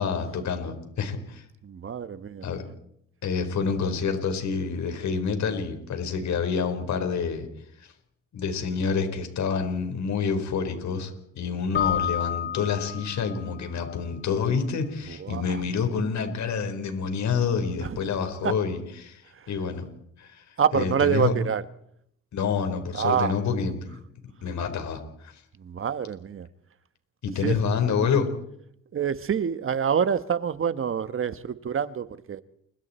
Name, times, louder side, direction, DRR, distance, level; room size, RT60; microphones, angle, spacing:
voice 1, 0.0-1.4 2.4-2.6 3.2-7.5 7.8-7.9 8.3-19.2 19.5-19.9 20.2-20.4 20.7-21.3 22.3-24.0 24.4-25.3 27.2-28.3, left 6 dB, 65° left, 4.6 m, -28 dB
voice 2, 1.6-2.5 15.1-15.6 17.8-18.0 18.4-18.5 19.3-19.5 20.6-21.6 22.9-23.4 25.6-26.5 27.4-27.6 28.9-32.4, right 7 dB, 45° right, 1.4 m, -27 dB
Keyboard (musical), 11.7-13.5, left 9 dB, 35° left, 1.0 m, -29 dB
29.0 x 23.5 x 4.5 m
cardioid pair, 90°, 30 cm